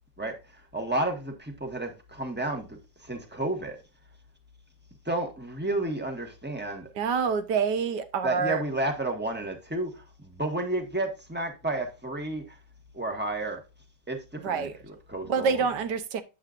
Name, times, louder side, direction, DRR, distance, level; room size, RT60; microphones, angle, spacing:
voice 1, 0.2-3.8 5.0-6.9 8.2-12.6 12.9-13.6 14.1-15.7, right 2 dB, 5° right, 1.1 m, -32 dB
voice 2, 6.9-8.6 14.4-14.7 15.3-16.2, right 5 dB, 65° right, 1.4 m, -27 dB
8.7 x 7.9 x 2.5 m
omnidirectional pair, 2.2 m